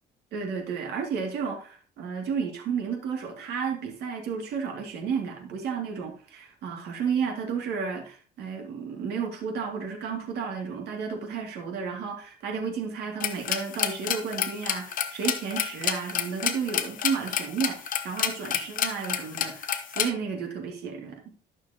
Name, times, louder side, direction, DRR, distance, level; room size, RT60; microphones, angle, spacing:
voice 1, 0.3-21.2, right 6 dB, 75° right, 2 dB, 2.2 m, -32 dB
sound 1, 13.2-20.1, left 9 dB, 55° left, 0.9 m, -28 dB
12.0 x 6.2 x 2.8 m, 0.40 s
cardioid pair, 110°, 17 cm